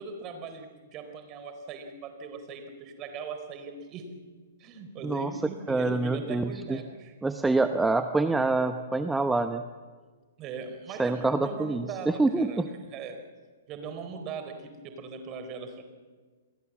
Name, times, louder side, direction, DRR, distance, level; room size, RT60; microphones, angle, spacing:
voice 1, 0.0-4.0 4.6-7.1 10.4-13.2 13.7-15.8, right 4 dB, 30° right, 7 dB, 4.3 m, -40 dB
voice 2, 5.7-6.8 7.2-9.6 11.0-12.7, right 3 dB, 5° right, 9 dB, 0.9 m, -26 dB
29.0 x 21.5 x 7.6 m, 1.4 s
figure-of-eight pair, 115°, 0 cm